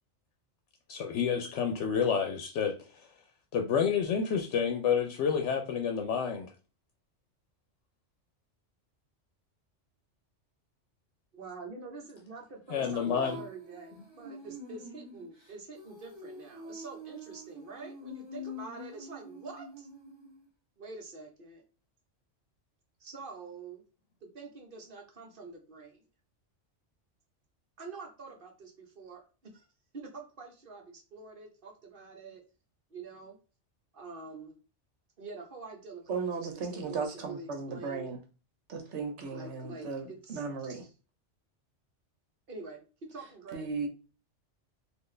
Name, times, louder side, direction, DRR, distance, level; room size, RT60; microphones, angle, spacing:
voice 1, 0.9-2.8 3.5-6.5 12.7-13.4, left 7 dB, 75° left, 0.9 m, -29 dB
voice 2, 11.3-19.9 20.8-21.6 23.0-23.8 24.2-26.0 27.8-29.7 29.9-32.4 32.9-33.4 33.9-34.6 35.2-38.1 39.3-40.9 42.5-43.7, right 4 dB, 50° right, 1.1 m, -46 dB
Female singing, 12.8-20.4, left 2 dB, 25° right, 1.3 m, -46 dB
voice 3, 36.1-38.2 38.7-40.8 43.5-43.9, right 4 dB, 70° right, 1.2 m, -36 dB
4.2 x 2.5 x 3.2 m
omnidirectional pair, 1.2 m